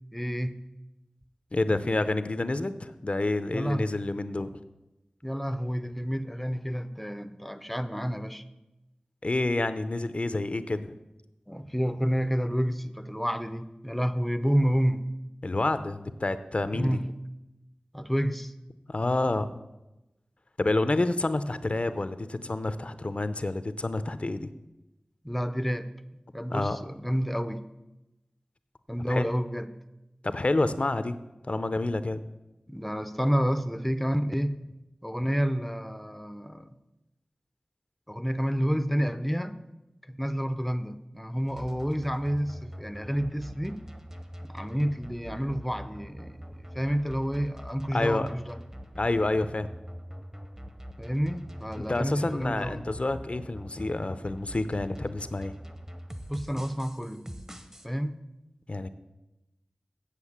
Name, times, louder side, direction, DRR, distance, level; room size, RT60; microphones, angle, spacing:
voice 1, 0.1-0.6 3.5-3.9 5.2-8.4 11.5-15.0 16.7-17.1 17.9-18.5 25.2-25.9 26.3-27.6 28.9-29.7 32.7-34.6 35.0-36.8 38.1-39.6 40.1-43.8 44.4-48.6 51.0-52.8 56.3-57.3 57.8-58.1, equal, 5° left, 0.6 m, -29 dB
voice 2, 1.5-4.5 9.2-10.9 15.4-17.0 18.9-19.6 20.6-24.5 26.5-26.8 29.1-29.3 30.2-31.1 31.4-32.2 47.9-48.3 49.0-49.7 51.7-55.6 58.7-58.9, left 2 dB, 50° left, 0.6 m, -28 dB
sound 1, 41.5-57.9, equal, 20° right, 0.9 m, -44 dB
8.4 x 7.6 x 7.3 m
wide cardioid pair, 55°, 3 cm